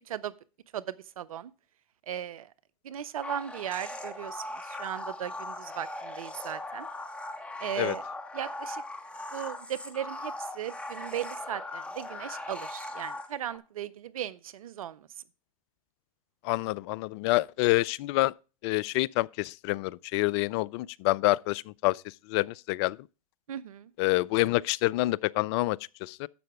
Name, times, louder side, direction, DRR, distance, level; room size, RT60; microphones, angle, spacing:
voice 1, 0.7-1.5 2.1-2.5 2.8-6.9 7.6-8.0 8.3-8.8 9.3-15.1 23.5-23.9, right 10 dB, 75° right, 0.5 m, -37 dB
sound 1, 3.2-13.6, left 2 dB, 5° left, 1.4 m, -39 dB
voice 2, 16.4-18.3 18.6-22.0 22.3-23.0 24.0-26.3, left 19 dB, 50° left, 0.4 m, -27 dB
11.0 x 7.6 x 3.4 m
hypercardioid pair, 100°, 18 cm